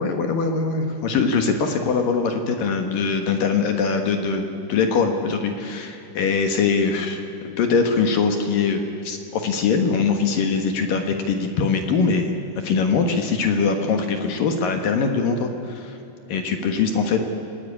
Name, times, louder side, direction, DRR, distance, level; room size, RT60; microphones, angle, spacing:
voice 1, 0.0-7.2 7.6-12.4 12.6-16.0 16.3-17.2, left 5 dB, 60° left, 5 dB, 2.5 m, -22 dB
26.0 x 18.0 x 9.9 m, 2.9 s
omnidirectional pair, 5.5 m